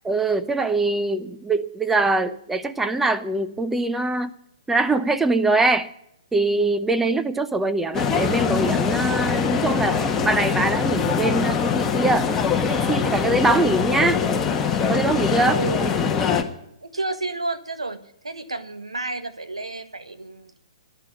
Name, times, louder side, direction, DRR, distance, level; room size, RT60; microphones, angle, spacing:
voice 1, 0.0-4.3 4.7-5.9 6.3-12.3 12.6-14.2 14.9-15.6, right 2 dB, 5° right, 0.7 m, -23 dB
sound 1, 7.9-16.4, left 6 dB, 15° left, 1.5 m, -23 dB
voice 2, 15.4-16.1 16.8-20.5, right 3 dB, 85° right, 1.5 m, -31 dB
11.0 x 10.5 x 9.3 m
figure-of-eight pair, 125°, 3 cm